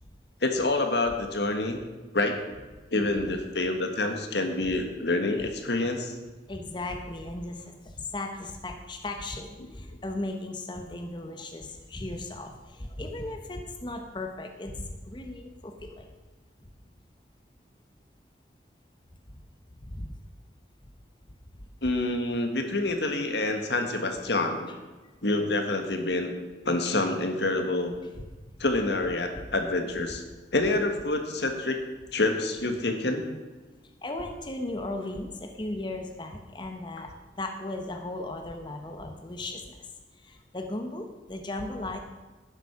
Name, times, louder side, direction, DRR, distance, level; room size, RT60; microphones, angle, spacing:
voice 1, 0.4-1.8 2.1-2.4 2.9-6.1 21.8-24.7 25.2-26.3 26.6-27.9 28.6-30.2 30.5-31.8 32.1-33.2, left 2 dB, 75° left, 5 dB, 1.6 m, -27 dB
voice 2, 6.5-16.1 16.6-16.7 19.8-20.1 24.7-24.8 25.0-25.1 28.2-28.3 34.0-37.1 37.4-42.0, left 2 dB, 25° left, 4 dB, 1.0 m, -36 dB
12.0 x 9.8 x 5.9 m, 1.3 s
head